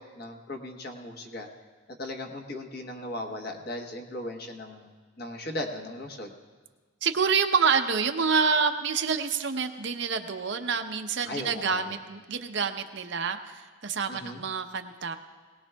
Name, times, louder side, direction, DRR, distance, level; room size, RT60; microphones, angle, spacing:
voice 1, 0.0-1.5 1.9-4.9 5.2-6.3 11.2-12.0 14.1-14.4, left 1 dB, 45° left, 3 dB, 1.1 m, -37 dB
voice 2, 7.0-15.2, right 5 dB, 55° right, 6 dB, 0.7 m, -27 dB
20.5 x 18.0 x 2.3 m, 1.4 s
head